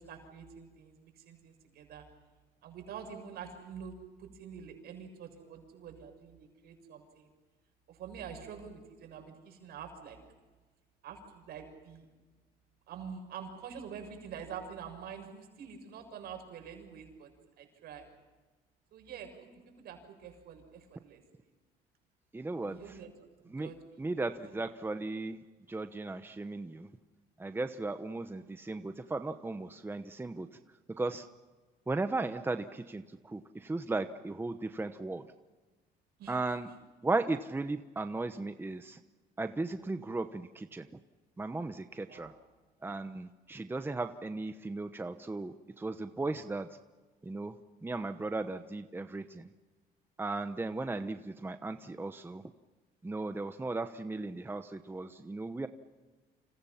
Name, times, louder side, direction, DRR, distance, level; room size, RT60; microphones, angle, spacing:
voice 1, 0.0-2.0 2.6-7.3 7.9-10.2 11.0-12.1 12.9-17.3 17.6-18.1 18.9-21.2 22.6-23.1 23.4-23.8 24.2-24.3 36.2-36.4 42.0-42.4, right 7 dB, 70° right, 5 dB, 6.7 m, -46 dB
voice 2, 22.3-23.0 23.5-23.7 24.0-25.4 25.7-26.9 27.4-30.6 30.9-31.3 31.9-35.3 36.3-36.7 37.0-39.0 39.4-40.9 41.4-42.3 42.8-46.8 47.2-49.5 50.2-52.4 53.0-55.7, right 2 dB, 15° right, 9 dB, 1.0 m, -36 dB
30.0 x 27.0 x 5.8 m, 1.3 s
cardioid pair, 110°, 17 cm